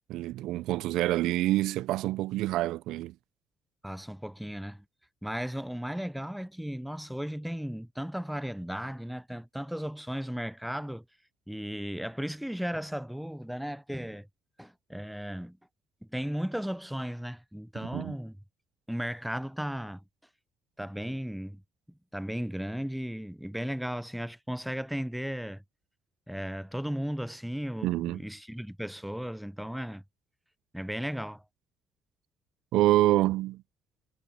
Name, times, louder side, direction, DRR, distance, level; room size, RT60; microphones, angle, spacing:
voice 1, 0.1-3.1 17.8-18.2 27.8-28.2 32.7-33.6, right 15 dB, 80° right, 0.4 m, -27 dB
voice 2, 3.8-4.8 5.2-11.0 11.5-14.3 14.6-15.6 16.1-18.3 18.9-20.0 20.8-21.6 22.1-25.6 26.3-30.0 30.7-31.4, equal, ahead, 0.4 m, -35 dB
supercardioid pair, 75°, 0 cm